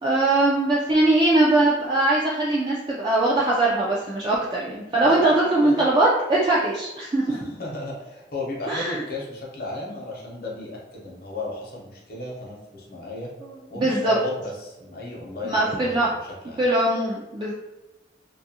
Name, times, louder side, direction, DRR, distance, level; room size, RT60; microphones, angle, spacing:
voice 1, 0.0-7.4 8.7-9.0 13.4-13.5 13.8-14.1 15.4-16.1 16.6-17.5, right 2 dB, 25° right, -5 dB, 0.3 m, -21 dB
voice 2, 5.0-5.9 7.3-13.3 13.7-16.6, left 2 dB, 55° left, -3 dB, 0.7 m, -34 dB
2.6 x 2.3 x 2.7 m, 0.99 s
head